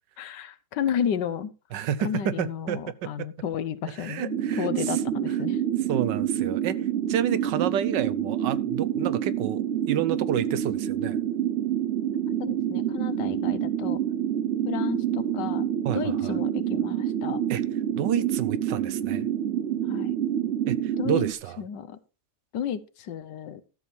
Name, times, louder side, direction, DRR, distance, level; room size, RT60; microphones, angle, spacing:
voice 1, 0.2-5.6 12.4-14.0 14.6-17.4 19.9-20.1 21.0-21.2 21.6-22.0 22.5-23.6, left 8 dB, 80° left, 13 dB, 1.5 m, -32 dB
voice 2, 1.7-3.3 4.0-5.0 5.3-5.4 5.9-6.8 7.1-11.2 15.8-16.4 17.5-17.6 18.0-19.3 20.7-21.6, right 9 dB, 85° right, 15 dB, 1.5 m, -30 dB
sound 1, 4.3-21.3, right 10 dB, 60° right, 0.7 m, -27 dB
13.0 x 7.0 x 4.4 m, 0.33 s
omnidirectional pair, 1.9 m